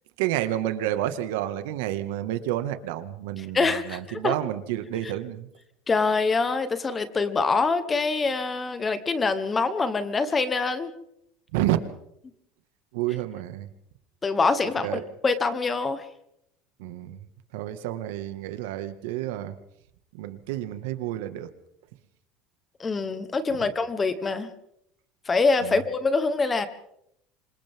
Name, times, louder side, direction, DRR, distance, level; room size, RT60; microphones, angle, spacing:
voice 1, 0.2-5.5 11.5-11.9 12.9-13.7 14.8-15.1 16.8-17.3 17.5-19.6 20.1-21.5 23.6-23.7 25.6-25.8, right 13 dB, 80° right, 9 dB, 1.8 m, -30 dB
voice 2, 3.5-4.0 4.2-4.3 5.9-10.9 14.2-16.1 22.8-24.5 25.3-26.7, left 4 dB, 15° left, 11 dB, 1.1 m, -25 dB
27.5 x 26.0 x 3.7 m, 0.76 s
cardioid pair, 175°, 0 cm